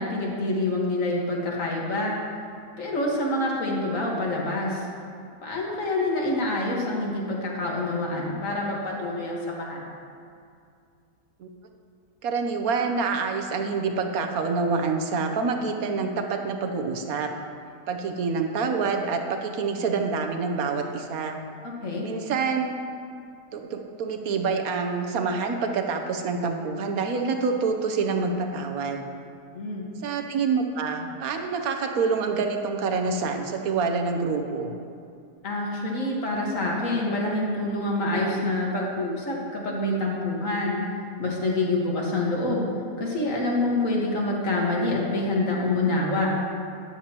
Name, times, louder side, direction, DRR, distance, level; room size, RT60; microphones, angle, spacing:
voice 1, 0.0-2.2 2.8-4.9 5.4-9.9 21.6-22.0 29.5-29.9 35.4-40.8 41.2-42.7 43.0-46.3, left 2 dB, 55° left, -2 dB, 1.9 m, -26 dB
voice 2, 12.2-17.3 17.9-21.4 22.0-22.7 23.5-29.1 30.0-34.7, right 4 dB, 65° right, 4 dB, 1.2 m, -27 dB
12.5 x 9.8 x 2.9 m, 2.4 s
omnidirectional pair, 1.7 m